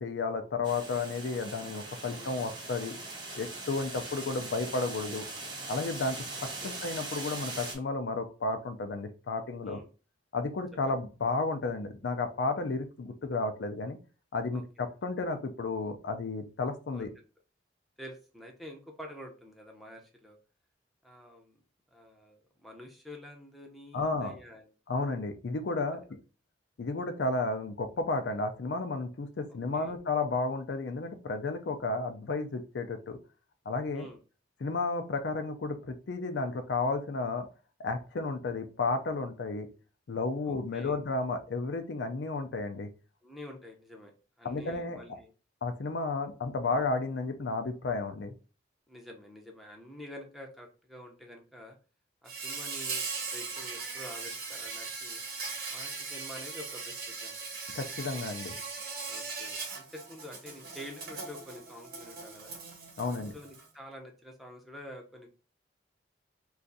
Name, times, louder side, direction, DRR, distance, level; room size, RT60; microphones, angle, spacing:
voice 1, 0.0-3.0 3.3-5.3 5.7-6.2 6.6-9.8 10.3-14.0 14.3-17.1 23.9-24.3 24.9-26.2 26.8-33.2 33.7-34.1 34.6-37.5 37.8-39.7 40.1-42.9 44.4-45.2 45.6-48.3 57.7-58.6 63.0-63.3, left 3 dB, 75° left, 7 dB, 0.4 m, -32 dB
sound 1, 0.6-7.7, right 2 dB, 25° right, 1.1 m, -41 dB
voice 2, 14.5-14.9 16.9-17.1 18.0-20.4 21.0-21.6 21.9-24.7 29.5-29.9 33.9-34.2 40.4-41.0 43.2-44.1 44.4-45.3 48.9-51.8 52.2-55.2 55.7-57.4 59.1-62.5 63.1-65.3, left 1 dB, ahead, 1 dB, 0.6 m, -48 dB
Insect, 52.2-63.7, right 4 dB, 50° right, 0.9 m, -39 dB
2.5 x 2.4 x 3.9 m, 0.34 s
head